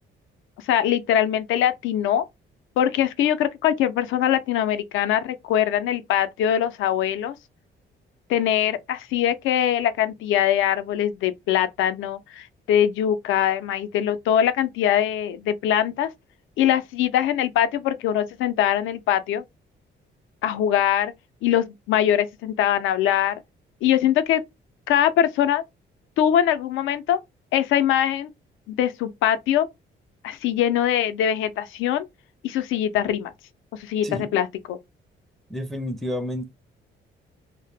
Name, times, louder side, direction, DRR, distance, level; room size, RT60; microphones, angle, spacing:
voice 1, 0.7-2.2 2.8-7.3 8.3-16.1 16.6-19.4 20.4-21.1 21.4-23.3 23.8-24.4 24.9-25.6 26.2-27.2 27.5-28.3 28.7-29.7 30.2-32.0 32.4-33.3 33.8-34.8, left 10 dB, 85° left, 0.4 m, -22 dB
voice 2, 35.5-36.4, left 1 dB, ahead, 0.4 m, -30 dB
2.0 x 2.0 x 3.2 m
cardioid pair, 90°, 20 cm